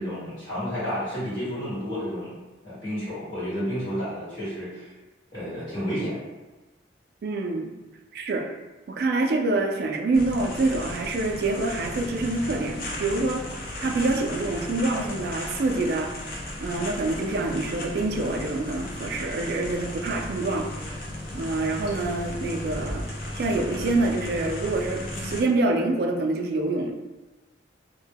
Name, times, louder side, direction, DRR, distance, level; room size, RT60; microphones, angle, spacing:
voice 1, 0.0-2.3 2.6-4.9 5.3-6.2, equal, 25° left, -13 dB, 1.1 m, -31 dB
voice 2, 7.2-7.7 8.1-8.4 8.9-16.2 16.6-20.9 21.3-23.0 23.3-26.9, right 2 dB, 55° right, 2 dB, 0.3 m, -26 dB
sound 1, 10.1-25.4, left 1 dB, 50° left, 0.5 m, -35 dB
2.1 x 2.1 x 3.3 m, 1.1 s
head